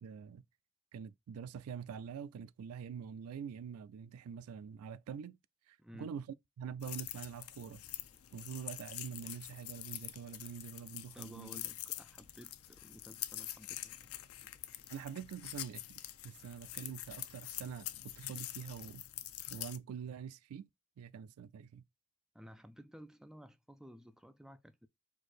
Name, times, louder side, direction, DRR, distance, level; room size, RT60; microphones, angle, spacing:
voice 1, 0.0-0.4 0.9-5.4 5.7-7.8 8.3-11.6 14.9-19.0 19.5-20.7 21.0-21.8, right 7 dB, 80° right, 0.3 m, -45 dB
voice 2, 5.8-6.1 11.1-14.5 22.3-24.9, equal, ahead, 0.3 m, -55 dB
sound 1, 6.8-19.8, left 14 dB, 70° left, 0.4 m, -46 dB
sound 2, 7.4-19.0, left 2 dB, 25° left, 0.7 m, -70 dB
4.5 x 2.5 x 4.5 m
head